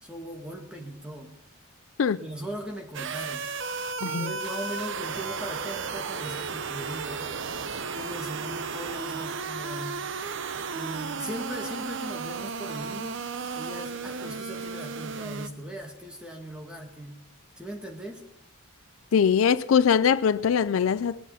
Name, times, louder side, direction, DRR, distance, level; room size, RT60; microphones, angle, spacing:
voice 1, 0.0-1.3 2.2-3.5 4.0-7.2 7.9-10.0 10.7-13.2 13.6-17.2 17.6-18.2, right 1 dB, 5° right, 2.0 m, -39 dB
sound 1, 2.9-15.5, right 5 dB, 60° right, 0.7 m, -34 dB
voice 2, 4.0-4.3 19.1-21.2, left 7 dB, 70° left, 0.4 m, -22 dB
20.5 x 8.3 x 5.7 m
head